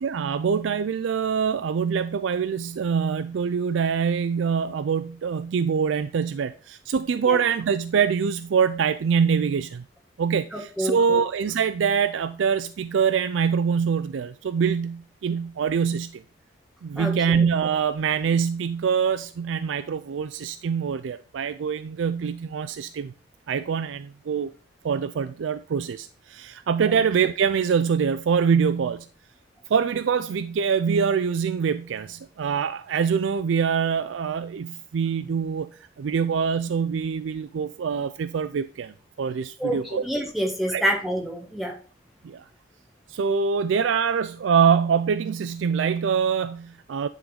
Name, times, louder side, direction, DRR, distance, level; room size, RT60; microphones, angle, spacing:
voice 1, 0.0-9.8 10.2-16.2 16.8-23.1 23.5-24.5 24.8-29.1 29.7-40.0 40.7-40.8 42.2-42.5 43.1-47.1, right 6 dB, 80° right, 0.4 m, -24 dB
voice 2, 10.5-11.2 17.0-17.4 26.9-27.0 39.6-41.7, right 1 dB, ahead, 1.6 m, -28 dB
9.8 x 3.8 x 5.0 m
head